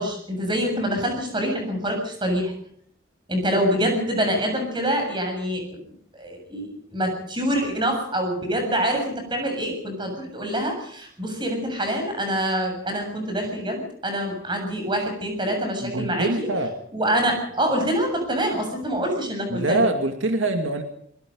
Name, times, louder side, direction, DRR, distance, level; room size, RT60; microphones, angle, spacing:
voice 1, 0.0-2.5 3.3-5.8 6.1-16.5 16.9-19.8, equal, 25° right, 4 dB, 7.5 m, -25 dB
voice 2, 15.8-16.8 19.5-20.8, right 2 dB, 80° right, 5 dB, 2.3 m, -24 dB
24.0 x 21.5 x 5.4 m, 0.66 s
head